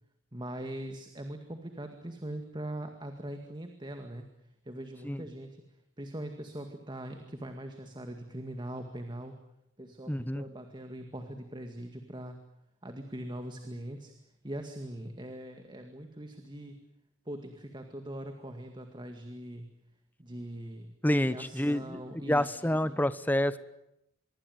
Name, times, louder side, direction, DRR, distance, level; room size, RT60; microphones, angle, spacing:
voice 1, 0.3-4.3 4.7-5.6 6.0-9.4 9.8-12.4 12.8-14.1 14.4-16.8 17.3-19.7 20.2-20.9 21.3-22.6 22.8-23.0, right 1 dB, 20° right, 6 dB, 2.1 m, -41 dB
voice 2, 10.1-10.4 21.0-23.6, left 1 dB, 10° left, 14 dB, 1.0 m, -28 dB
25.5 x 23.0 x 9.4 m, 0.83 s
head